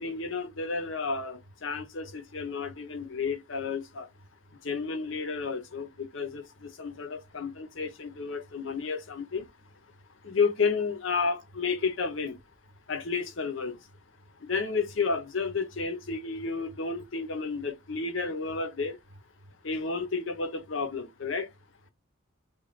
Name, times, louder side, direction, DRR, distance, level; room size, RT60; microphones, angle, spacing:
voice 1, 0.0-4.1 4.6-9.5 10.2-12.4 12.9-13.8 14.4-19.0 19.6-21.5, left 4 dB, 65° left, 0.7 m, -31 dB
voice 2, 1.7-3.1 15.7-16.5 18.8-19.5, right 1 dB, 60° right, 0.9 m, -53 dB
3.1 x 2.3 x 3.9 m
head